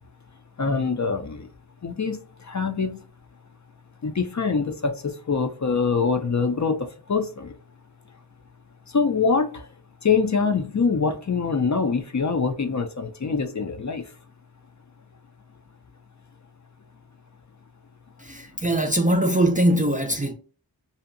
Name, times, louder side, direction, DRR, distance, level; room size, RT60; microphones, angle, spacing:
voice 1, 0.6-1.5 1.8-3.0 4.0-7.5 8.9-9.7 10.0-14.0, left 5 dB, 45° left, 0.4 m, -24 dB
voice 2, 18.2-20.3, right 1 dB, 20° right, 0.4 m, -21 dB
2.7 x 2.1 x 2.5 m
wide cardioid pair, 45°, 42 cm